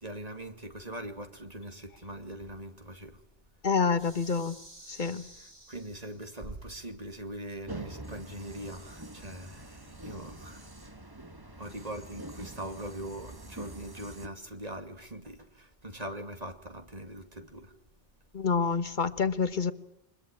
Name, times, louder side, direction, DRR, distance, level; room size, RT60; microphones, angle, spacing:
voice 1, 0.0-3.2 5.2-10.7 11.6-17.7, right 1 dB, 40° right, 2.6 m, -42 dB
voice 2, 3.6-4.6 4.9-5.3 18.3-19.7, left 5 dB, 50° left, 1.4 m, -27 dB
sound 1, 3.9-6.5, right 1 dB, 55° right, 5.3 m, -52 dB
sound 2, 7.7-14.3, right 2 dB, 20° right, 1.7 m, -45 dB
24.5 x 21.0 x 9.0 m
omnidirectional pair, 1.1 m